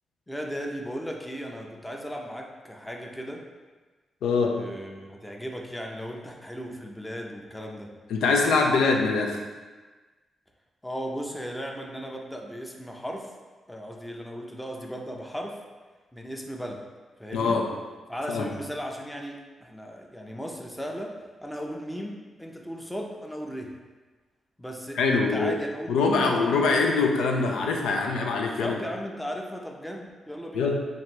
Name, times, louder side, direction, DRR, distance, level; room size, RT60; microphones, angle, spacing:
voice 1, 0.3-3.4 4.5-7.9 10.8-13.3 13.7-15.6 16.1-16.8 17.2-17.6 18.1-23.7 24.6-26.7 28.4-30.7, equal, 5° left, 1 dB, 0.6 m, -36 dB
voice 2, 4.2-4.6 8.1-9.4 17.3-17.7 18.3-18.5 25.0-25.5 25.9-28.8 30.5-30.8, left 4 dB, 90° left, 1 dB, 0.4 m, -23 dB
3.0 x 2.6 x 4.4 m, 1.3 s
cardioid pair, 65°, 0 cm